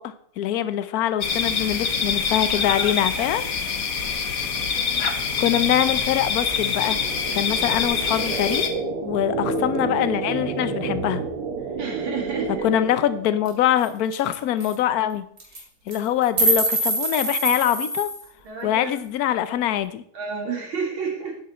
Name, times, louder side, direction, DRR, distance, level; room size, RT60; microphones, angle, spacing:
voice 1, 0.0-3.4 5.4-7.0 7.3-8.7 9.0-11.2 12.6-15.2 15.9-18.1 18.6-20.0, left 11 dB, 70° left, 13 dB, 0.9 m, -23 dB
sound 1, 1.2-8.7, left 5 dB, 50° left, 1.3 m, -25 dB
voice 2, 2.5-3.3 11.8-12.7 18.4-18.9 19.3-19.4 20.1-21.4, right 5 dB, 70° right, 1 dB, 3.0 m, -31 dB
sound 2, 4.8-13.7, right 4 dB, 90° right, 2.1 m, -30 dB
sound 3, 13.5-13.6 13.8-13.9 14.1-14.3 14.6-14.7 15.4-15.6 15.9-18.2, right 2 dB, 45° right, 2.8 m, -24 dB
10.0 x 8.6 x 4.3 m, 0.63 s
omnidirectional pair, 2.4 m